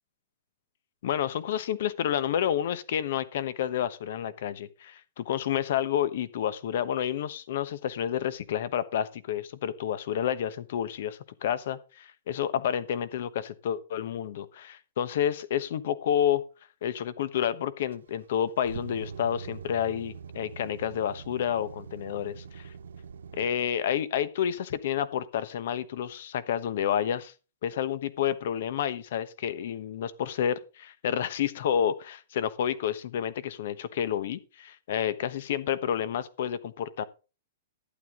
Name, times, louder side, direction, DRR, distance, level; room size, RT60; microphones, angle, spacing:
voice 1, 1.0-16.4 16.8-22.7 23.3-27.3 27.6-37.0, left 9 dB, 60° left, 1.1 m, -30 dB
sound 1, 17.9-23.5, right 6 dB, 90° right, 0.6 m, -43 dB
11.5 x 9.4 x 3.8 m
hypercardioid pair, 150°, 0 cm